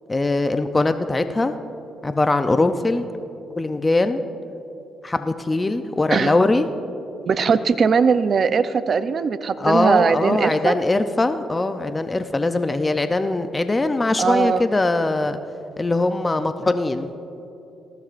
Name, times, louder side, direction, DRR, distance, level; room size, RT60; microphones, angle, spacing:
voice 1, 0.1-1.5 2.0-3.0 3.6-4.2 5.0-6.7 9.6-15.4 15.8-17.1, left 2 dB, 20° left, 9 dB, 0.5 m, -21 dB
voice 2, 7.2-10.8 14.2-14.6, right 5 dB, 50° right, 12 dB, 0.6 m, -20 dB
19.0 x 15.0 x 2.5 m, 2.9 s
cardioid pair, 90°, 0 cm